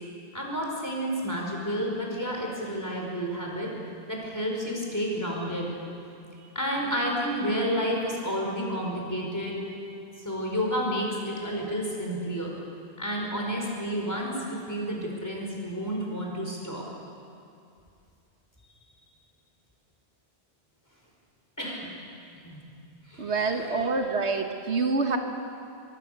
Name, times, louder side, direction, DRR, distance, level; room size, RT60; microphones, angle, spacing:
voice 1, 0.3-3.7 4.1-5.7 6.5-9.8 10.2-12.5 13.0-16.8 21.6-21.9 22.4-22.6 23.1-23.8, equal, 15° left, -1 dB, 5.0 m, -30 dB
voice 2, 23.2-25.2, right 4 dB, 85° right, 4 dB, 1.8 m, -26 dB
24.0 x 23.0 x 6.8 m, 2.5 s
omnidirectional pair, 1.1 m